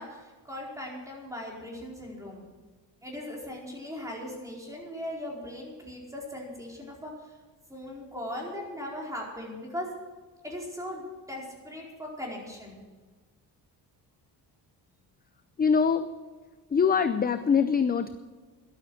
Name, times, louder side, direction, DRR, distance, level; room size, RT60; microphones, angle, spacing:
voice 1, 0.0-2.5 3.0-7.1 7.7-9.9 10.4-12.8, left 1 dB, 10° right, -2 dB, 4.5 m, -39 dB
voice 2, 15.6-16.1 16.7-18.2, left 6 dB, 25° left, 11 dB, 0.5 m, -23 dB
13.5 x 12.0 x 6.4 m, 1.4 s
cardioid pair, 130°, 42 cm